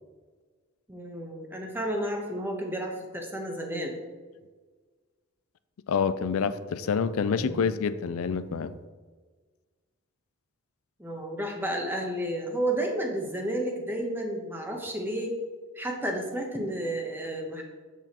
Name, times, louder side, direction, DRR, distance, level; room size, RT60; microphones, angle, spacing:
voice 1, 0.9-4.0 7.3-7.6 11.0-15.3 15.7-17.6, right 1 dB, 10° right, 1 dB, 0.9 m, -31 dB
voice 2, 5.9-8.8, left 6 dB, 85° left, 13 dB, 0.4 m, -27 dB
7.8 x 7.0 x 2.9 m, 1.4 s
head